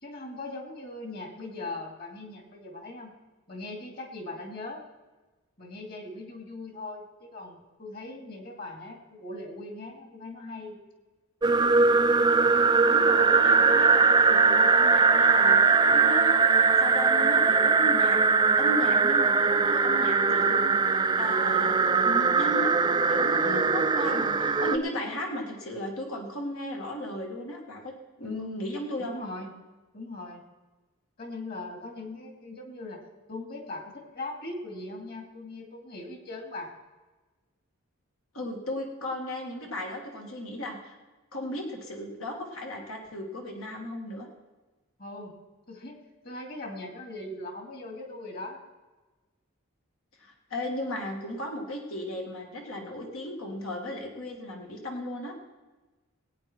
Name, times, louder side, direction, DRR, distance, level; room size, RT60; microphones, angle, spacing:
voice 1, 0.0-3.1 3.5-4.8 5.6-10.8 23.4-23.7 29.0-29.6 29.9-30.4 31.2-33.0 33.3-36.7 45.0-45.4 45.7-46.0 46.2-48.6, left 2 dB, 45° left, 3 dB, 2.4 m, -40 dB
sound 1, 11.4-24.8, right 4 dB, 20° right, 0.3 m, -21 dB
voice 2, 12.9-18.2 18.6-21.8 22.0-27.9 28.2-29.2 38.3-41.0 41.3-44.3 50.2-55.3, left 1 dB, 80° left, 1 dB, 2.1 m, -35 dB
19.5 x 9.0 x 4.4 m, 1.2 s
head